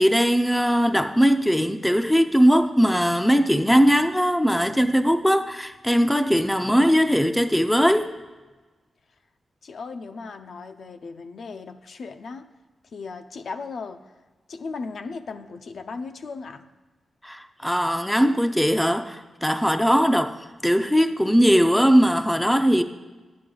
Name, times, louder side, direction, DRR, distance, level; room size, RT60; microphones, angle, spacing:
voice 1, 0.0-8.1 17.2-22.8, equal, 5° left, 0.4 m, -20 dB
voice 2, 9.6-12.5 12.9-14.2 14.5-16.7, left 4 dB, 65° left, 0.5 m, -37 dB
11.5 x 9.5 x 3.8 m
wide cardioid pair, 150°, 0 cm